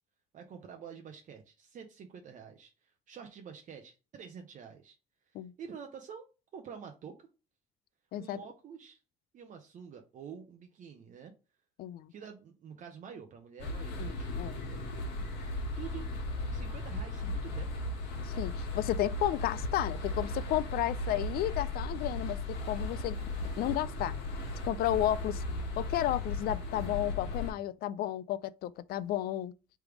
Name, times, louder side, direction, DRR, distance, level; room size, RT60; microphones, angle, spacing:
voice 1, 0.3-5.0 5.3-7.3 8.2-9.0 9.3-11.3 12.1-15.2 15.8-16.1 16.5-17.7, right 7 dB, 50° right, 0.7 m, -48 dB
voice 2, 11.8-12.1 14.0-14.6 18.2-23.2 23.6-24.2 24.6-25.4 25.8-29.5, left 13 dB, 65° left, 0.4 m, -32 dB
sound 1, 13.6-27.5, left 2 dB, 85° left, 1.4 m, -36 dB
3.4 x 3.1 x 4.8 m
cardioid pair, 110°, 17 cm